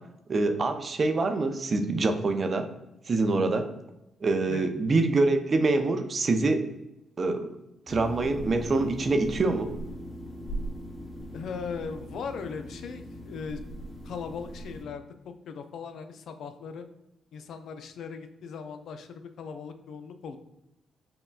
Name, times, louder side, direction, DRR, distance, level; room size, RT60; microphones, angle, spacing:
voice 1, 0.3-2.7 3.1-3.7 4.2-6.6 7.2-7.5 7.9-9.7, right 3 dB, 45° right, 6 dB, 0.4 m, -25 dB
sound 1, 7.9-14.8, equal, 30° left, 1.4 m, -39 dB
voice 2, 11.3-13.6 14.0-16.9 17.3-20.4, left 5 dB, 75° left, 8 dB, 0.3 m, -39 dB
5.5 x 2.1 x 2.2 m, 0.92 s
supercardioid pair, 65°, 0 cm